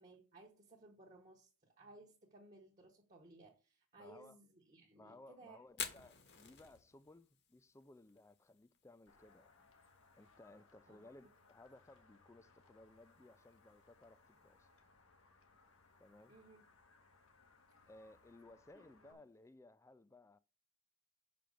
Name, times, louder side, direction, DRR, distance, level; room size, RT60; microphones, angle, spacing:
voice 1, 0.0-5.6 10.9-11.0 16.3-16.7 18.7-19.2, right 2 dB, 35° right, 0.9 m, -60 dB
voice 2, 4.0-4.4 5.0-9.7 10.2-14.7 16.0-16.3 17.9-20.4, left 2 dB, 15° left, 0.3 m, -60 dB
Fire, 5.7-19.5, left 7 dB, 55° left, 1.3 m, -56 dB
sound 1, 9.1-19.1, left 3 dB, 80° left, 1.4 m, -68 dB
5.8 x 5.1 x 6.3 m
head